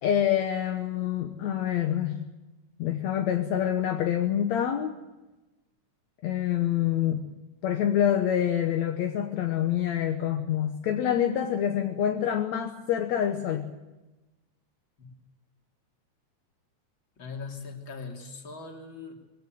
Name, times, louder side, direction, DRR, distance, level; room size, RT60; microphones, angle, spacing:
voice 1, 0.0-2.2 2.8-4.9 6.2-7.2 7.6-13.7, left 10 dB, 70° left, 5 dB, 2.3 m, -26 dB
voice 2, 17.2-19.2, left 4 dB, 40° left, 2 dB, 3.5 m, -40 dB
22.0 x 16.5 x 9.1 m, 1.1 s
omnidirectional pair, 3.5 m